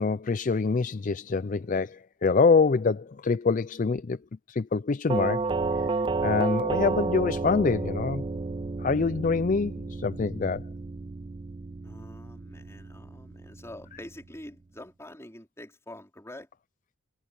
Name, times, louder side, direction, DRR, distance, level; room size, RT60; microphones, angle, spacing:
voice 1, 0.0-4.2 4.5-5.5 5.7-6.0 6.2-8.2 8.8-10.6, left 4 dB, 40° left, 0.4 m, -25 dB
Doorbell, 5.1-13.9, right 3 dB, 25° right, 0.3 m, -31 dB
voice 2, 11.8-16.5, left 1 dB, 15° left, 4.6 m, -46 dB
head